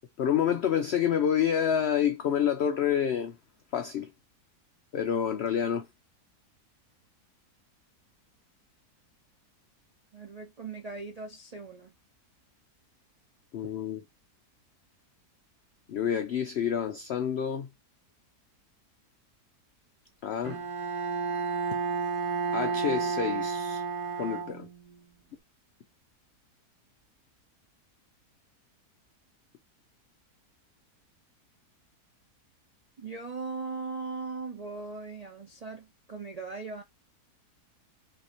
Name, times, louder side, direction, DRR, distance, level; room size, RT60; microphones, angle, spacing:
voice 1, 0.2-3.3 3.7-4.1 4.9-5.9 13.5-14.0 15.9-17.7 20.2-20.6 22.5-23.8 24.2-24.7, left 8 dB, 90° left, 0.5 m, -28 dB
voice 2, 10.1-11.9 33.0-36.8, right 4 dB, 65° right, 0.4 m, -39 dB
Bowed string instrument, 20.4-25.0, right 5 dB, 80° right, 1.4 m, -31 dB
5.3 x 2.8 x 2.9 m
omnidirectional pair, 1.7 m